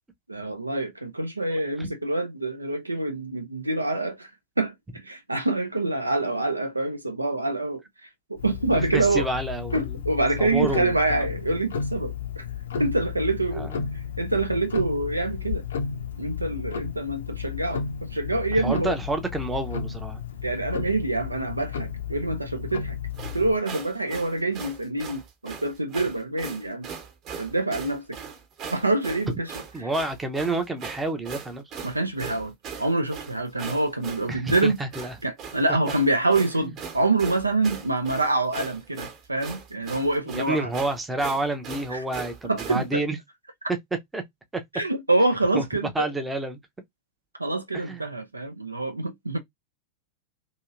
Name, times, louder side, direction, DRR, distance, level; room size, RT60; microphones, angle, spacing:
voice 1, 0.3-4.3 4.6-7.8 8.3-9.3 9.7-12.4 12.8-13.7 14.2-15.6 16.2-18.9 20.4-23.0 23.3-26.9 27.4-28.2 28.7-29.5 29.8-29.9 31.8-34.8 35.2-40.7 41.9-42.0 42.5-43.0 44.7-46.1 47.4-49.4, right 2 dB, 85° right, 0.4 m, -26 dB
Tick-tock, 8.4-23.6, left 7 dB, 65° left, 0.6 m, -33 dB
voice 2, 8.7-10.0 10.4-11.2 13.5-13.9 18.5-20.2 29.7-31.6 34.3-35.1 40.3-43.2 44.1-44.2 44.5-44.6 45.5-45.6 45.9-46.6 47.7-48.1, right 2 dB, 10° right, 0.6 m, -29 dB
sound 1, 23.1-42.9, right 6 dB, 40° right, 1.0 m, -39 dB
2.8 x 2.7 x 2.4 m
figure-of-eight pair, 90°, 0 cm